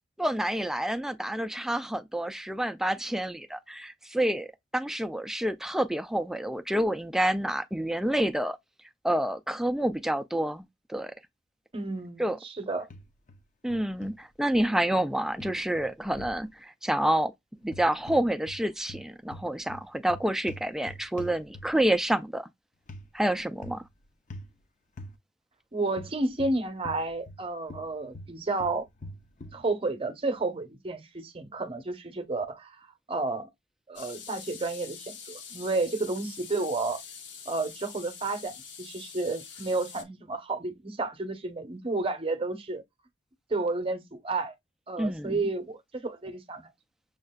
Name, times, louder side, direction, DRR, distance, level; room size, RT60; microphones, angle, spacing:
voice 1, 0.2-4.5 4.7-8.6 9.0-10.6 10.9-11.1 12.2-12.4 13.6-17.3 17.6-22.5 23.1-23.8 45.0-45.5, right 1 dB, 5° right, 0.3 m, -28 dB
voice 2, 11.7-12.9 25.7-28.9 29.5-32.8 33.1-33.5 33.9-37.0 37.5-42.8 43.5-44.5 44.9-46.7, right 3 dB, 30° right, 0.8 m, -31 dB
sound 1, 12.9-13.4 13.7-14.1 15.4-16.4 17.6-18.6 18.9-21.9 22.9-23.1 23.6-23.9 24.3-24.5 25.0-25.2 26.0-27.4 27.7-29.6, left 1 dB, 40° left, 0.6 m, -44 dB
sound 2, 34.0-40.0, left 6 dB, 70° left, 1.0 m, -45 dB
6.3 x 2.4 x 2.2 m
head